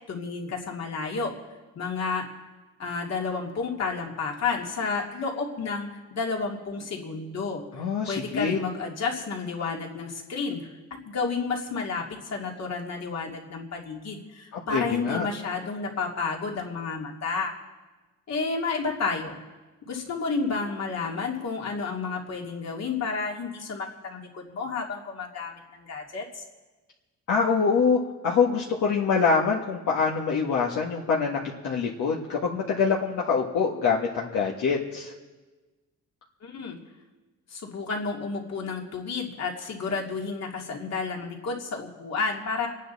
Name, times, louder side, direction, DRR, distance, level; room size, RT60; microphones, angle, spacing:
voice 1, 0.1-1.3 1.8-2.3 2.8-7.6 8.1-10.7 11.0-17.6 18.3-19.4 19.9-26.4 36.4-36.8 37.5-42.7, left 4 dB, 60° left, 0 dB, 2.7 m, -31 dB
voice 2, 7.7-8.6 14.5-15.3 27.3-31.4 31.6-35.1, left 5 dB, 75° left, -3 dB, 1.7 m, -25 dB
27.5 x 9.2 x 4.1 m, 1.2 s
cardioid pair, 90°, 30 cm